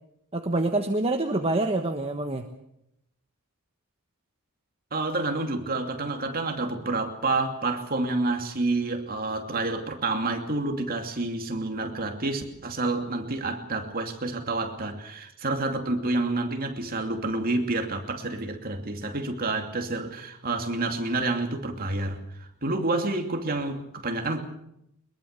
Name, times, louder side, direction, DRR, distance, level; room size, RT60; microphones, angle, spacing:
voice 1, 0.3-2.4, right 2 dB, 25° right, 4 dB, 1.3 m, -26 dB
voice 2, 4.9-24.4, right 2 dB, 40° right, 4 dB, 2.7 m, -29 dB
22.5 x 21.5 x 6.8 m, 0.80 s
head